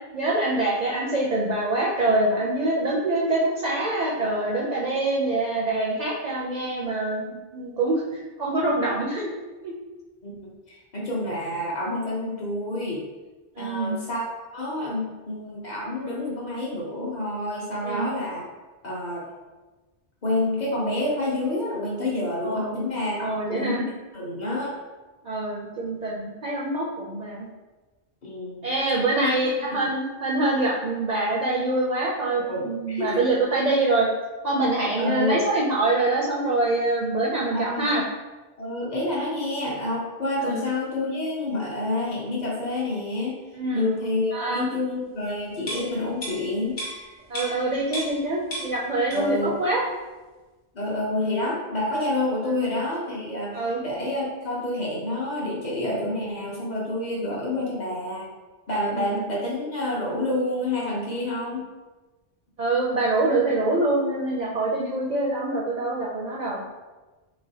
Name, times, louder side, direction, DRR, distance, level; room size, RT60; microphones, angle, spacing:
voice 1, 0.1-9.3 9.6-9.7 13.6-14.0 17.8-18.1 22.4-22.8 23.2-23.8 25.2-27.5 28.6-34.1 34.4-38.0 40.4-40.6 43.5-43.9 44.3-44.7 47.3-49.8 52.4-52.7 53.5-53.8 58.9-59.3 62.6-66.6, right 2 dB, 55° right, -4 dB, 0.5 m, -25 dB
voice 2, 10.2-13.0 13.6-14.3 14.5-18.5 18.8-19.2 20.2-24.8 28.2-28.7 29.2-29.6 32.3-33.2 35.0-35.4 37.5-38.0 38.6-43.4 43.7-46.8 49.1-49.5 50.7-53.6 53.8-58.3 58.7-61.7, left 1 dB, 50° left, -4 dB, 0.8 m, -28 dB
sound 1, 45.6-48.3 48.5-49.5 49.8-49.9, right 1 dB, 65° left, 1.2 m, -35 dB
3.4 x 3.0 x 2.7 m, 1.2 s
omnidirectional pair, 1.1 m